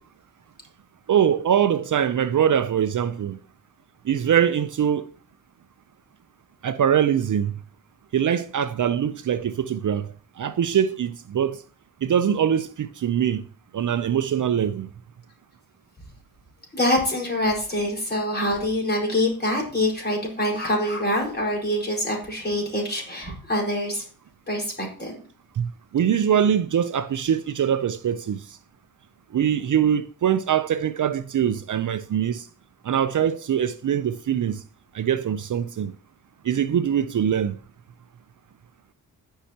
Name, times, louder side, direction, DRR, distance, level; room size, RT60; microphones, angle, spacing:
voice 1, 1.1-3.4 4.0-5.1 6.6-7.5 8.1-10.1 10.4-11.6 12.0-13.4 13.7-14.9 25.6-28.6 29.3-32.5 32.8-34.6 34.9-35.9 36.4-37.6, right 9 dB, 55° right, 0.6 m, -23 dB
voice 2, 16.7-24.0 24.5-25.2, left 1 dB, 25° left, 4.7 m, -25 dB
17.0 x 5.7 x 2.9 m
cardioid pair, 85°, 37 cm